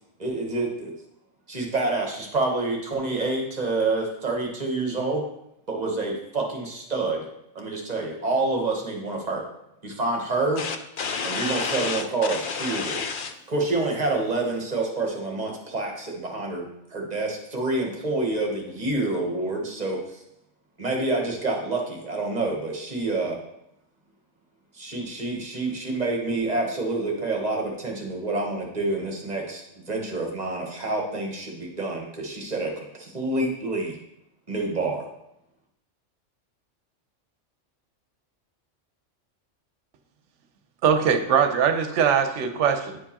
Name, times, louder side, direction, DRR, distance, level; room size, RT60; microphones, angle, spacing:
voice 1, 0.2-0.9 1.5-5.2 5.7-7.3 7.5-9.4 9.8-10.6 11.2-12.9 13.5-20.0 20.8-23.4 24.7-32.7 33.0-33.9 34.5-35.0, right 2 dB, 35° right, 0 dB, 1.1 m, -27 dB
voice 2, 10.6-13.4, left 5 dB, 55° left, 6 dB, 0.7 m, -30 dB
voice 3, 40.8-43.0, right 7 dB, 75° right, 7 dB, 0.9 m, -21 dB
9.5 x 4.5 x 2.8 m, 0.80 s
omnidirectional pair, 1.3 m